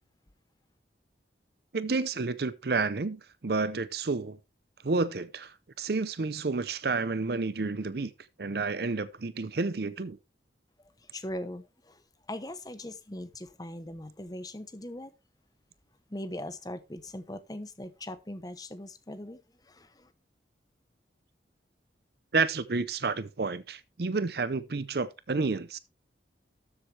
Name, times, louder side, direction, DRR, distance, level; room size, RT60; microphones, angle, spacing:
voice 1, 1.7-4.4 4.8-8.1 8.4-10.2 22.3-25.8, right 3 dB, 55° right, 0.6 m, -30 dB
voice 2, 10.8-15.1 16.1-20.1, left 1 dB, 20° left, 0.9 m, -40 dB
13.0 x 7.5 x 3.3 m
head